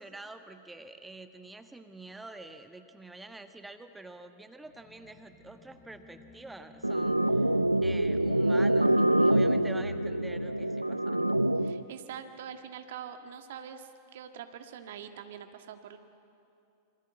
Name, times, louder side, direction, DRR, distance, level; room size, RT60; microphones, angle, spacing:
voice 1, 0.0-11.4, right 2 dB, 5° right, 7 dB, 1.4 m, -47 dB
sound 1, 4.6-10.7, left 3 dB, 20° left, 2.3 m, -56 dB
sound 2, 6.8-11.8, right 1 dB, 85° right, 0.6 m, -26 dB
voice 2, 11.6-16.0, right 8 dB, 55° right, 7 dB, 1.7 m, -44 dB
26.5 x 25.5 x 8.2 m, 2.6 s
figure-of-eight pair, 90°, 0 cm